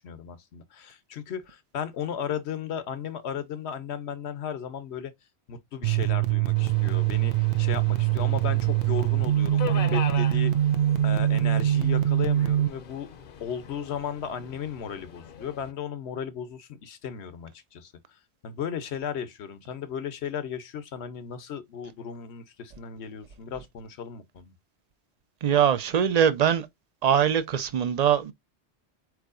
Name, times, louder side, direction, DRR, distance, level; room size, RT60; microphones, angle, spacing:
voice 1, 0.0-5.1 5.5-10.7 11.0-13.1 13.4-24.5, left 7 dB, 75° left, 1.1 m, -35 dB
sound 1, 5.8-12.7, right 12 dB, 80° right, 0.9 m, -23 dB
Subway metro underground, 6.6-15.7, left 7 dB, 55° left, 0.8 m, -41 dB
voice 2, 25.4-26.7 27.0-28.3, right 8 dB, 45° right, 0.6 m, -22 dB
4.7 x 4.5 x 2.5 m
omnidirectional pair, 1.1 m